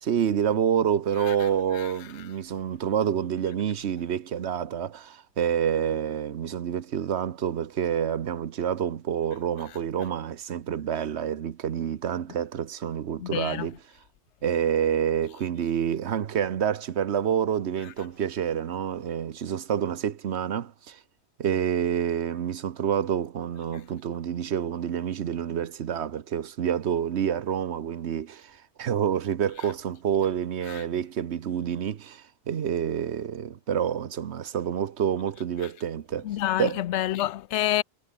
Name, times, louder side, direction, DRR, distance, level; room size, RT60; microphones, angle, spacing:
voice 1, 0.0-13.8 14.4-21.0 21.4-36.3 36.6-36.8, right 8 dB, 75° right, 1.2 m, -28 dB
voice 2, 13.2-13.7 30.7-30.8 36.2-37.8, left 13 dB, 80° left, 0.9 m, -28 dB
omnidirectional pair, 1.2 m